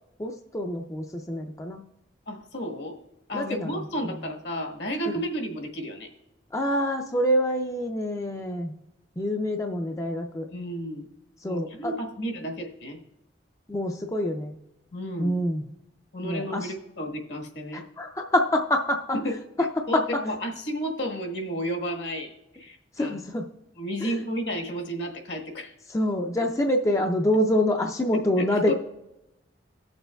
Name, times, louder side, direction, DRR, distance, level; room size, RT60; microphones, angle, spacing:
voice 1, 0.2-1.8 3.3-3.8 6.5-8.7 9.2-10.5 11.4-11.9 13.7-14.5 15.2-15.6 16.2-16.7 17.7-19.0 19.8-20.0 23.0-23.4 24.0-24.2 25.9-28.7, left 1 dB, 15° left, 3 dB, 0.4 m, -26 dB
voice 2, 2.3-3.0 3.3-6.1 10.5-11.1 11.4-13.0 14.9-15.4 16.1-17.9 19.1-23.2 23.8-25.7 28.4-28.7, equal, 65° left, 2 dB, 1.4 m, -32 dB
18.5 x 6.6 x 2.3 m, 0.92 s
head